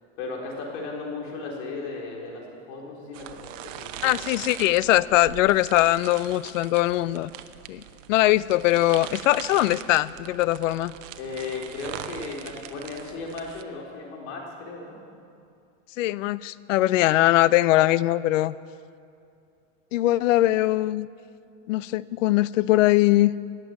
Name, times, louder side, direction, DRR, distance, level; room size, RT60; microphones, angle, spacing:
voice 1, 0.2-4.2 11.2-15.0, left 3 dB, 60° left, -1 dB, 4.1 m, -36 dB
sound 1, 3.1-13.6, right 11 dB, 80° right, 0.9 m, -41 dB
voice 2, 4.0-7.3 7.7-7.8 8.1-10.9 16.0-18.5 19.9-21.1 21.7-23.3, left 16 dB, 85° left, 19 dB, 0.6 m, -21 dB
18.0 x 7.6 x 9.2 m, 2.5 s
supercardioid pair, 140°, 37 cm